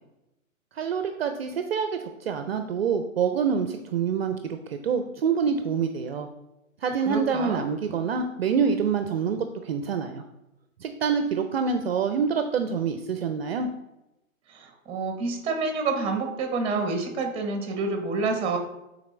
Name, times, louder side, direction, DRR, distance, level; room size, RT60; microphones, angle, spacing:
voice 1, 0.7-6.3 6.8-10.2 10.8-13.7, right 6 dB, 50° right, 7 dB, 0.5 m, -26 dB
voice 2, 7.1-7.6 14.5-18.6, right 3 dB, 15° right, 4 dB, 0.9 m, -28 dB
8.6 x 4.1 x 3.2 m, 0.92 s
figure-of-eight pair, 130°, 41 cm